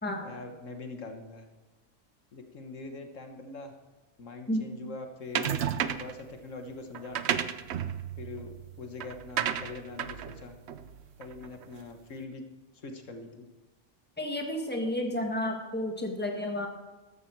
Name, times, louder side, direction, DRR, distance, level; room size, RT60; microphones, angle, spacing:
voice 1, 0.2-1.5 2.3-3.7 4.2-5.6 6.0-7.3 8.2-10.5 11.2-12.4 12.7-13.5, left 3 dB, 80° left, 5 dB, 1.7 m, -43 dB
sound 1, 5.4-6.2 6.9-11.6, right 9 dB, 65° right, 0.9 m, -33 dB
voice 2, 14.2-16.7, left 1 dB, 10° left, 2 dB, 1.5 m, -31 dB
14.0 x 13.0 x 4.6 m, 1.2 s
omnidirectional pair, 1.3 m